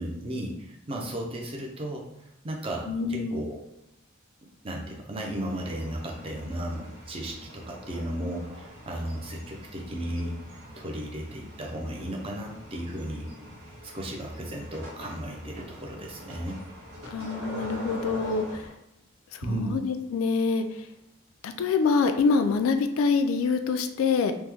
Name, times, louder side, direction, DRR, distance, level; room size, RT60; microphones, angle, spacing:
voice 1, 0.0-3.6 4.6-13.3 13.8-16.6 19.4-19.8, right 1 dB, 25° right, 0 dB, 0.4 m, -35 dB
voice 2, 2.9-3.4 17.1-18.7 19.3-20.9 21.4-24.3, left 4 dB, 80° left, 8 dB, 0.3 m, -25 dB
sound 1, 5.3-18.7, equal, 85° right, 1.0 m, -44 dB
3.0 x 2.1 x 3.4 m, 0.86 s
head